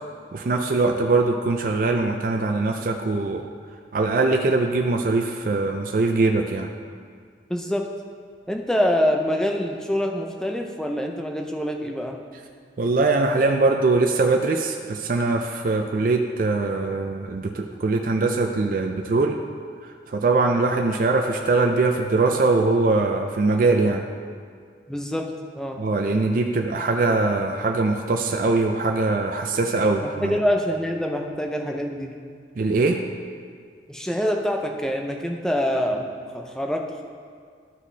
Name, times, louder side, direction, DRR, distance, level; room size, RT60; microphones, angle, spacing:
voice 1, 0.3-3.5 3.9-6.7 12.8-19.4 19.8-24.0 25.8-30.4 32.6-33.0, right 3 dB, 50° right, 3 dB, 0.4 m, -22 dB
voice 2, 7.5-7.8 8.5-12.2 24.9-25.3 25.6-25.8 30.0-32.1 33.9-37.0, equal, 5° left, 2 dB, 0.5 m, -25 dB
12.5 x 5.0 x 3.3 m, 2.1 s
head